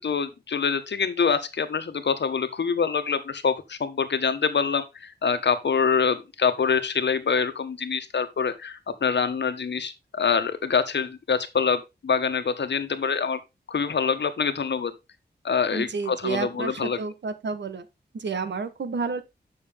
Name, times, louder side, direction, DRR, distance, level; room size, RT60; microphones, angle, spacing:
voice 1, 0.0-13.4 13.7-14.9 15.4-17.0, left 6 dB, 80° left, 1.2 m, -25 dB
voice 2, 15.7-17.8 18.1-19.2, right 5 dB, 85° right, 1.2 m, -30 dB
9.0 x 6.0 x 3.5 m
wide cardioid pair, 115°, 18 cm